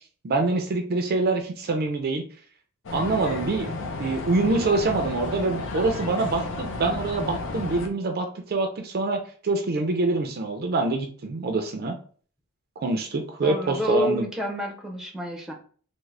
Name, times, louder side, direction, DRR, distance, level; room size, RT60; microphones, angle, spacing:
voice 1, 0.2-2.2 2.9-3.7 4.0-12.0 12.8-14.2, right 3 dB, 45° right, 5 dB, 0.4 m, -25 dB
sound 1, 2.8-7.9, left 2 dB, 60° left, 0.7 m, -32 dB
voice 2, 13.4-15.5, equal, ahead, 1 dB, 0.6 m, -28 dB
3.6 x 2.0 x 3.2 m, 0.43 s
head